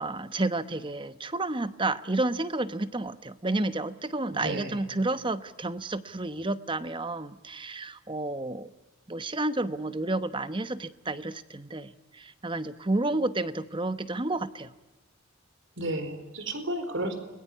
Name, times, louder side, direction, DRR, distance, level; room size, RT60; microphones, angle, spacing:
voice 1, 0.0-8.7 9.1-14.7, right 2 dB, 25° right, 13 dB, 1.0 m, -31 dB
voice 2, 4.4-4.8 15.8-17.1, right 1 dB, 60° right, 9 dB, 4.4 m, -32 dB
29.5 x 21.5 x 8.5 m, 1.1 s
head